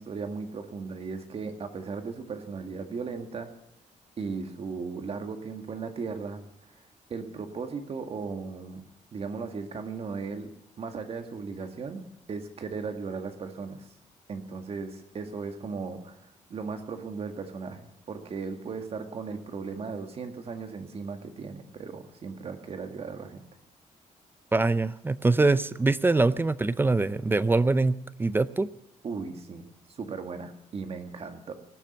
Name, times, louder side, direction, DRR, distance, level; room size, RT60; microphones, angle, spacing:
voice 1, 0.0-3.5 4.2-6.4 7.1-8.8 9.1-10.5 10.8-13.9 14.3-16.2 16.5-23.4 29.0-31.5, right 5 dB, 50° right, 6 dB, 2.0 m, -37 dB
voice 2, 24.5-28.7, right 3 dB, 15° right, 17 dB, 0.5 m, -24 dB
18.5 x 7.4 x 9.4 m, 0.85 s
cardioid pair, 115°, 13 cm